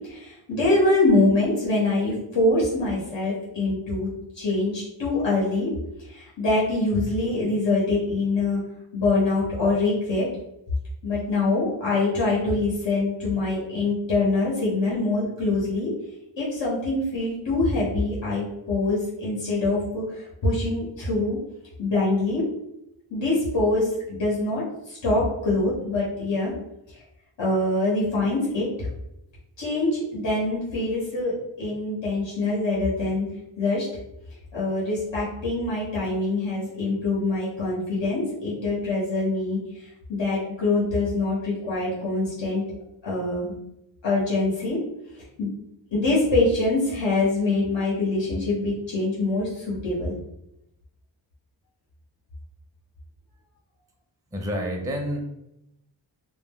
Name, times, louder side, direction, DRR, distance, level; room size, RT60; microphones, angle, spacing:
voice 1, 0.1-4.1 4.4-5.7 6.0-8.6 8.9-10.3 11.0-15.9 16.4-21.4 21.8-22.4 23.1-26.5 27.4-28.9 29.6-33.3 33.6-33.9 34.5-39.6 40.1-42.6 43.0-43.5 44.0-44.8 45.4-45.5 45.9-50.1, left 2 dB, 70° left, -6 dB, 1.0 m, -24 dB
voice 2, 54.3-55.2, equal, 10° right, 1 dB, 0.6 m, -28 dB
2.3 x 2.1 x 3.6 m, 0.86 s
cardioid pair, 45°, 45 cm